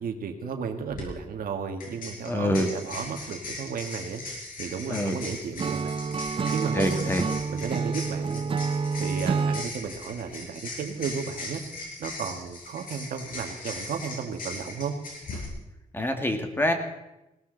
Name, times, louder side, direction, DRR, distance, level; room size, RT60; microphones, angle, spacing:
voice 1, 0.0-4.2 4.6-5.9 6.5-7.1 7.5-8.5 9.0-11.6 12.0-15.0, right 6 dB, 80° right, 5 dB, 1.9 m, -34 dB
sound 1, 0.8-1.0 1.8-15.5, left 2 dB, 70° left, 6.3 m, -39 dB
voice 2, 2.3-2.7 4.9-5.2 6.7-7.2 15.9-16.7, left 1 dB, 15° left, 5 dB, 2.0 m, -25 dB
Acoustic guitar / Strum, 5.6-9.7, right 5 dB, 35° right, 0.7 m, -28 dB
20.0 x 18.0 x 4.0 m, 0.93 s
wide cardioid pair, 130°, 15 cm